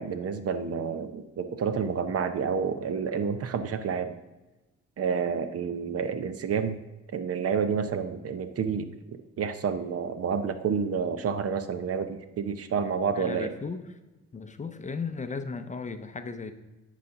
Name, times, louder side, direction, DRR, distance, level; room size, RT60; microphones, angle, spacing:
voice 1, 0.0-4.1 5.0-6.8 7.1-8.9 9.4-13.5, right 6 dB, 50° right, 10 dB, 0.7 m, -29 dB
voice 2, 13.1-13.8 14.3-16.5, left 4 dB, 25° left, 9 dB, 0.6 m, -35 dB
9.4 x 4.1 x 5.8 m, 1.1 s
cardioid pair, 90°, 30 cm